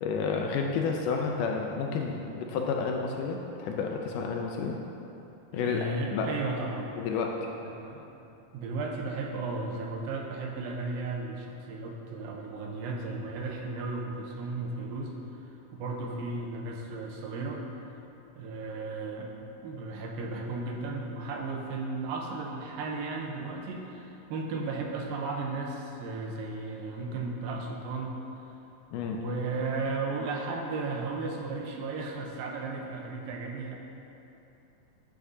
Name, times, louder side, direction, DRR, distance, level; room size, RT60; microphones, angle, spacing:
voice 1, 0.0-4.8 5.5-6.3 7.0-7.3 28.9-29.2, left 5 dB, 80° left, 1 dB, 2.0 m, -30 dB
voice 2, 5.6-6.9 7.6-8.0 8.5-17.6 18.4-19.3 19.6-28.2 29.1-33.8, right 3 dB, 85° right, 1 dB, 2.5 m, -35 dB
10.0 x 8.8 x 2.7 m, 2.9 s
omnidirectional pair, 4.1 m